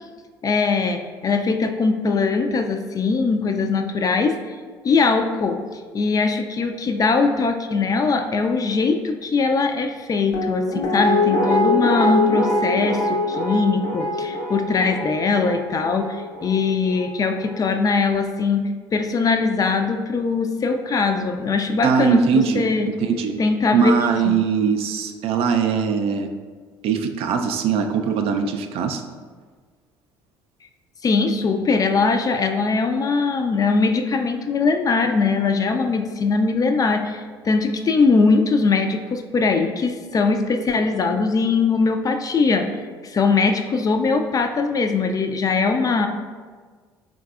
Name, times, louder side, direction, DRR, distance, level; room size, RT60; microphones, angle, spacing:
voice 1, 0.4-4.3 4.8-5.6 5.9-18.6 18.9-22.9 23.4-23.9 24.3-24.4 31.0-42.7 43.0-46.1, left 4 dB, 30° left, 6 dB, 0.3 m, -21 dB
Guitar, 10.3-17.3 17.7-17.8, left 1 dB, 60° left, 0.7 m, -24 dB
voice 2, 21.8-23.4 23.7-26.3 26.8-29.0, right 6 dB, 55° right, 5 dB, 0.3 m, -21 dB
3.9 x 3.6 x 2.4 m, 1.5 s
figure-of-eight pair, 55°, 12 cm